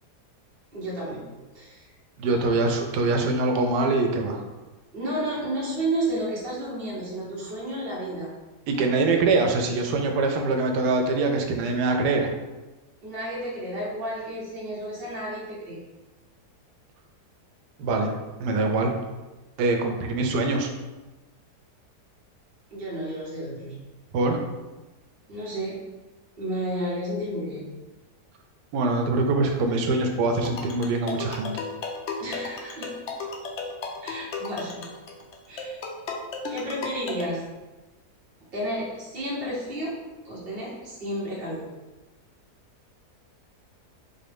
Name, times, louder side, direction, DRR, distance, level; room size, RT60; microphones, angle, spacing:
voice 1, 0.7-1.2 1.5-1.9 2.3-2.7 4.9-8.3 13.0-15.8 22.7-23.8 25.3-25.8 26.4-27.7 32.2-32.9 34.0-34.9 35.5-35.8 36.5-37.4 38.5-39.9 40.2-41.6, right 1 dB, 40° right, -6 dB, 1.4 m, -32 dB
voice 2, 2.2-4.4 8.7-12.3 17.8-18.1 18.4-18.9 19.6-20.7 24.1-24.4 28.7-31.5, right 3 dB, 90° right, 3 dB, 1.2 m, -23 dB
sound 1, 30.3-37.3, left 3 dB, 75° left, 0.6 m, -35 dB
4.4 x 2.6 x 3.4 m, 1.1 s
omnidirectional pair, 1.7 m